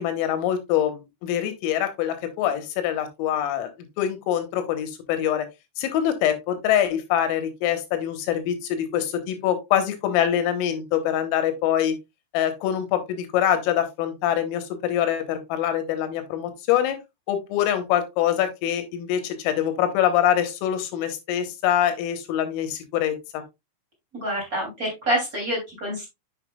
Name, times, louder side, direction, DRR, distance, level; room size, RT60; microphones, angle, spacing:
voice 1, 0.0-3.7 4.0-5.5 5.8-12.0 12.3-17.0 17.3-23.4, left 10 dB, 90° left, 8 dB, 3.8 m, -24 dB
voice 2, 24.1-26.0, equal, 25° right, -2 dB, 2.3 m, -27 dB
8.1 x 6.5 x 2.3 m, 0.22 s
omnidirectional pair, 5.8 m